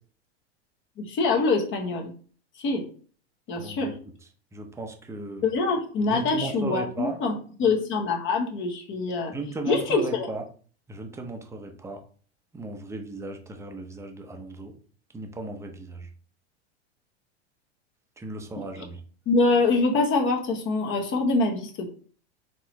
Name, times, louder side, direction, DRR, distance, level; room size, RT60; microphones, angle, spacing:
voice 1, 1.0-2.1 2.6-2.9 3.5-3.9 5.4-9.3 9.7-10.3 19.3-21.9, left 3 dB, 35° left, 2 dB, 1.0 m, -24 dB
voice 2, 3.6-3.9 4.5-5.5 6.1-7.2 9.3-10.4 10.9-12.0 12.5-14.7 15.1-16.1 18.2-19.0, right 2 dB, 10° right, 4 dB, 0.7 m, -36 dB
4.7 x 3.1 x 3.0 m, 0.42 s
hypercardioid pair, 115°, 33 cm